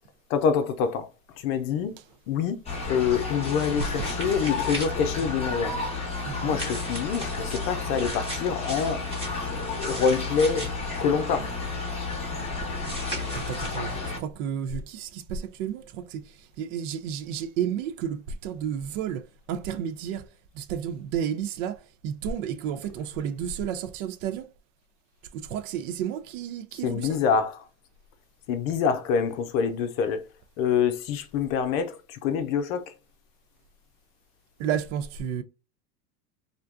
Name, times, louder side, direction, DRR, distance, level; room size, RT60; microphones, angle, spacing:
voice 1, 0.3-1.1 1.4-1.9 2.3-2.6 2.9-5.8 6.4-9.0 9.5-10.7 11.0-11.5 26.8-27.6 28.5-30.2 30.6-32.8, left 6 dB, 60° left, 0.6 m, -26 dB
sound 1, 2.7-14.2, left 3 dB, 15° left, 0.8 m, -32 dB
sound 2, 3.4-4.9 6.5-10.7 12.8-13.8, right 1 dB, 10° right, 1.1 m, -39 dB
voice 2, 6.2-6.6 7.4-7.5 11.9-12.1 12.4-12.7 13.1-24.5 25.3-27.2 34.6-35.4, right 8 dB, 55° right, 0.5 m, -32 dB
2.5 x 2.2 x 2.3 m
hypercardioid pair, 105°, 46 cm